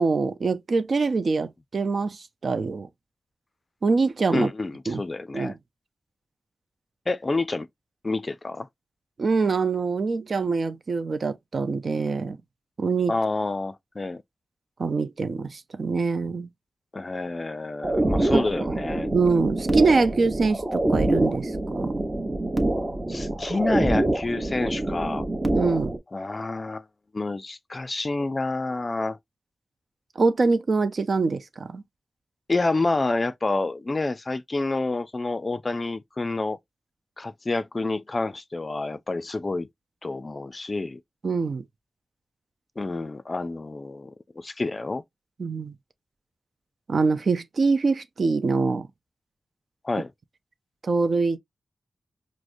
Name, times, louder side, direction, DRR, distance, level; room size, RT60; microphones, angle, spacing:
voice 1, 0.0-2.9 3.8-4.5 4.9-5.0 5.3-5.6 9.2-12.4 12.8-13.1 14.8-16.5 18.3-18.8 19.1-21.9 25.6-25.9 30.2-31.8 41.2-41.6 45.4-45.7 46.9-48.9 50.8-51.4, right 4 dB, 65° right, 0.5 m, -24 dB
voice 2, 4.3-5.6 7.1-7.7 8.0-8.7 13.1-14.2 16.9-19.1 23.1-25.3 26.1-26.8 27.1-29.2 32.5-36.6 37.2-39.7 40.0-41.0 42.8-45.0 49.8-50.1, left 3 dB, 40° left, 0.4 m, -28 dB
sound 1, 17.8-26.0, right 1 dB, 30° right, 0.8 m, -26 dB
4.8 x 2.0 x 2.5 m
cardioid pair, 50°, 0 cm